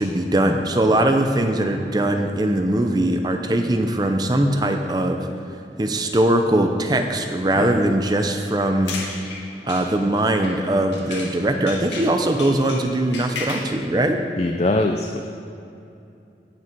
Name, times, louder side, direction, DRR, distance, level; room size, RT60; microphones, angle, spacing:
voice 1, 0.0-5.3 5.8-9.0 9.6-14.2, right 1 dB, 20° right, 5 dB, 0.6 m, -21 dB
sound 1, 8.6-11.4 11.7-13.7, left 3 dB, 85° left, 2.0 m, -34 dB
voice 2, 14.4-15.3, left 2 dB, 35° left, 4 dB, 0.4 m, -22 dB
17.5 x 6.1 x 4.6 m, 2.6 s
head